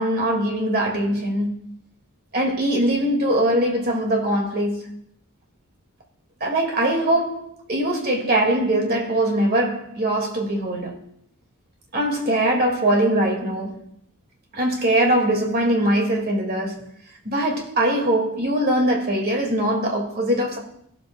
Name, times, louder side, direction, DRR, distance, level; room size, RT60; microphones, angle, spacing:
voice 1, 0.0-1.7 2.3-4.9 6.4-11.0 11.9-13.8 14.5-16.8 17.2-20.6, right 1 dB, 45° right, 2.1 m, -22 dB
18.0 x 7.6 x 2.3 m
head